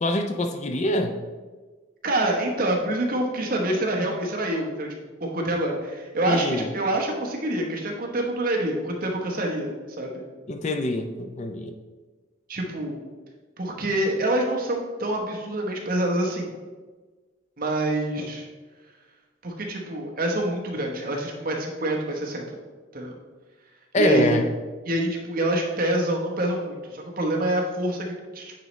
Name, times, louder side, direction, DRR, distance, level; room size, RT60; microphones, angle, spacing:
voice 1, 0.0-1.2 6.2-6.7 10.5-11.7 23.9-24.5, left 1 dB, 35° left, 6 dB, 0.4 m, -24 dB
voice 2, 2.0-4.9 5.2-10.1 12.5-13.0 13.6-16.5 17.6-18.5 19.4-22.5 22.9-23.1 24.0-24.4 24.9-28.5, right 1 dB, 45° right, 1 dB, 0.9 m, -26 dB
9.2 x 4.0 x 3.1 m, 1.3 s
head